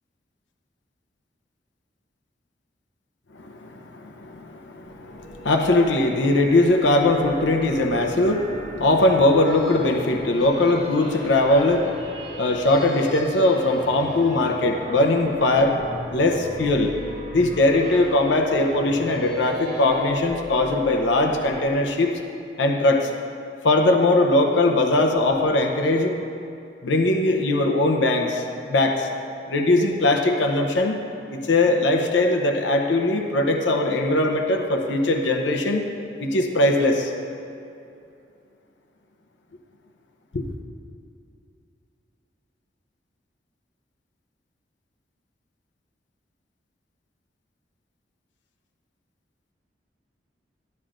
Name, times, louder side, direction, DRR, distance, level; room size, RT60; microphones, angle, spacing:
voice 1, 3.4-11.9 12.4-15.8 16.1-16.9 17.3-22.1 22.6-23.1 23.6-26.1 26.8-29.1 29.5-31.0 31.3-35.9 36.2-37.1 40.3-40.4, left 2 dB, 80° left, 3 dB, 0.7 m, -20 dB
sound 1, 4.8-21.7, equal, 35° right, 2.5 m, -38 dB
13.0 x 10.5 x 2.5 m, 2.6 s
head